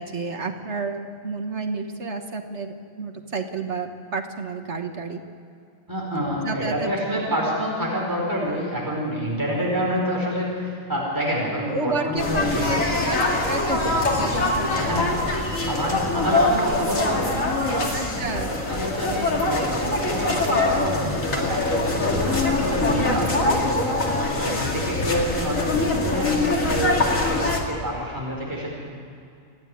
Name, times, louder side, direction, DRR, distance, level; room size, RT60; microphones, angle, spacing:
voice 1, 0.0-5.2 6.4-7.0 7.3-7.4 11.6-14.9 17.9-18.6 23.0-23.3 24.4-24.9, right 3 dB, 60° right, 5 dB, 1.6 m, -31 dB
voice 2, 5.9-12.8 14.7-15.1 15.7-17.9 18.3-23.9 24.4-28.7, equal, 15° right, -3 dB, 4.8 m, -28 dB
sound 1, 12.2-27.6, left 2 dB, 80° left, 2.9 m, -23 dB
29.0 x 10.5 x 9.9 m, 2.4 s
omnidirectional pair, 1.4 m